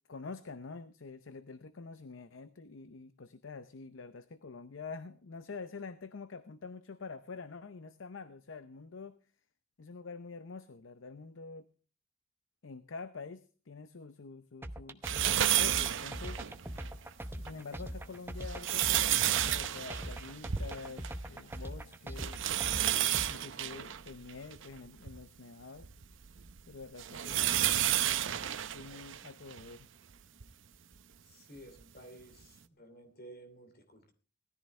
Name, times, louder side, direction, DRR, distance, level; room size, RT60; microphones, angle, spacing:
voice 1, 0.1-9.2 9.8-11.7 12.6-16.4 17.4-25.9 26.7-28.3 28.7-29.9, left 4 dB, 70° left, 12 dB, 0.7 m, -47 dB
sound 1, 14.6-23.3, right 1 dB, 10° right, 0.8 m, -41 dB
sound 2, 15.0-16.9 17.4-17.5 18.2-21.2 21.5-21.6 22.1-25.2 25.8-29.7 30.4-30.5 31.8-31.9, right 12 dB, 70° right, 0.7 m, -31 dB
voice 2, 31.3-34.1, right 1 dB, 50° left, 7 dB, 2.8 m, -53 dB
19.0 x 14.0 x 3.3 m, 0.38 s
head